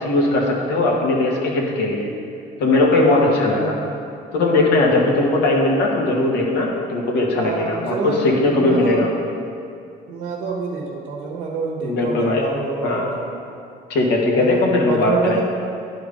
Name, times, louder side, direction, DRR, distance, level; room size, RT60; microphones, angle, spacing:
voice 1, 0.0-2.1 2.6-3.8 4.3-9.1 11.8-12.4 12.8-13.1 13.9-15.4, left 2 dB, 75° left, -2 dB, 1.5 m, -19 dB
voice 2, 3.4-4.1 7.2-9.2 10.1-13.3 14.3-15.4, right 4 dB, 90° right, -2 dB, 1.1 m, -27 dB
9.9 x 4.6 x 5.1 m, 2.5 s
cardioid pair, 110°, 17 cm